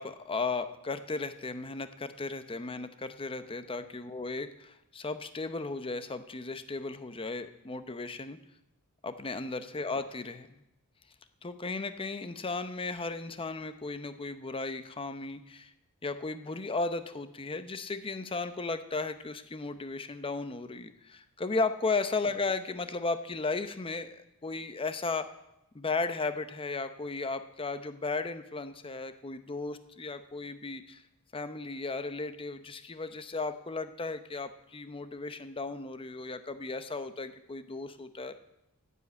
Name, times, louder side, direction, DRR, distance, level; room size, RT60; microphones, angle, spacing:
voice 1, 0.0-8.4 9.0-10.6 11.4-15.7 16.0-25.3 25.7-31.0 31.3-38.3, left 3 dB, 25° left, 11 dB, 0.7 m, -35 dB
9.4 x 8.4 x 8.5 m, 0.86 s
head